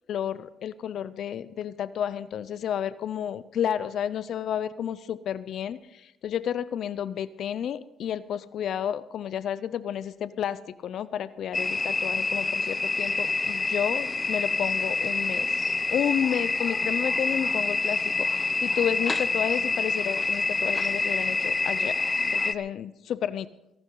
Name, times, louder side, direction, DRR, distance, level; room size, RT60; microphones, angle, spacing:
voice 1, 0.1-15.5 15.9-22.0 22.3-23.5, left 9 dB, 70° left, 16 dB, 0.6 m, -31 dB
sound 1, 11.5-22.5, left 3 dB, 25° left, 0.8 m, -27 dB
22.5 x 12.0 x 3.9 m, 0.86 s
cardioid pair, 90°, 0 cm